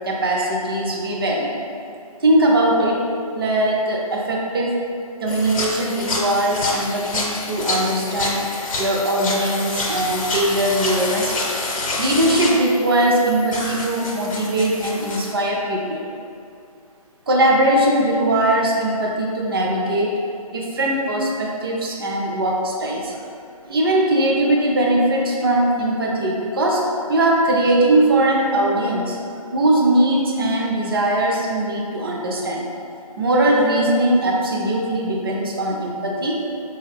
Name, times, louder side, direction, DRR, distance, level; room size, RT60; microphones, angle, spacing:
voice 1, 0.0-1.6 2.2-3.0 3.3-4.8 5.2-8.5 8.8-11.4 12.0-16.0 17.3-20.1 20.5-23.1 23.7-26.8 27.1-29.2 29.5-32.6 33.2-36.3, right 1 dB, 40° right, -2 dB, 0.5 m, -20 dB
sound 1, 5.3-15.3, left 2 dB, 60° left, 0.7 m, -27 dB
3.6 x 2.3 x 3.3 m, 2.4 s
hypercardioid pair, 160°, 19 cm